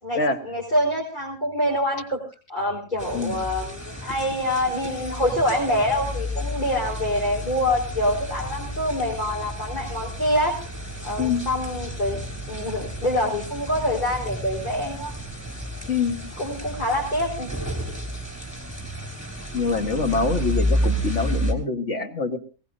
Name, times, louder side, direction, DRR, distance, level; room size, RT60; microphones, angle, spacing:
voice 1, 0.0-2.2 2.5-10.6 11.0-12.2 12.5-15.1 16.4-17.5, left 1 dB, 35° left, 0 dB, 4.3 m, -25 dB
sound 1, 3.0-21.5, equal, 10° left, 3.5 m, -31 dB
voice 2, 15.9-16.3 19.5-22.4, left 4 dB, 55° left, 6 dB, 2.0 m, -25 dB
21.5 x 18.5 x 2.7 m, 0.34 s
omnidirectional pair, 1.5 m